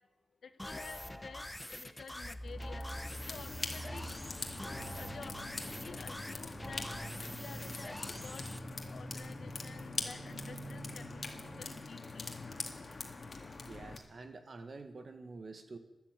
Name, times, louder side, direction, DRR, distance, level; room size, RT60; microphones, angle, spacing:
voice 1, 0.4-2.9 3.3-4.1 4.5-6.9 7.3-8.5 8.9-12.4, left 5 dB, 70° left, 11 dB, 1.0 m, -51 dB
sound 1, 0.6-8.6, left 1 dB, 10° left, 0.9 m, -45 dB
sound 2, 2.2-12.0, right 2 dB, 30° right, 1.4 m, -48 dB
sound 3, 2.5-14.0, left 3 dB, 45° left, 2.1 m, -44 dB
voice 2, 13.7-15.8, right 3 dB, 50° right, 8 dB, 1.7 m, -48 dB
13.0 x 11.0 x 8.4 m, 1.0 s
wide cardioid pair, 85°, 0 cm